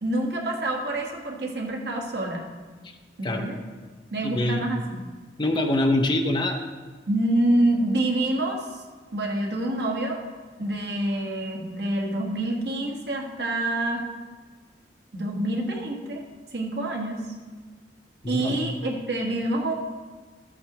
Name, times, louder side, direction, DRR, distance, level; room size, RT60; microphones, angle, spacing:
voice 1, 0.0-2.4 3.2-3.6 4.1-5.1 7.1-8.7 9.1-10.2 10.6-14.0 15.1-16.2 16.5-17.2 18.3-19.7, right 1 dB, 70° right, 0 dB, 1.4 m, -27 dB
voice 2, 4.2-4.8 5.4-6.6 18.2-18.6, left 1 dB, 25° left, 4 dB, 0.7 m, -24 dB
13.0 x 8.5 x 3.0 m, 1.4 s
head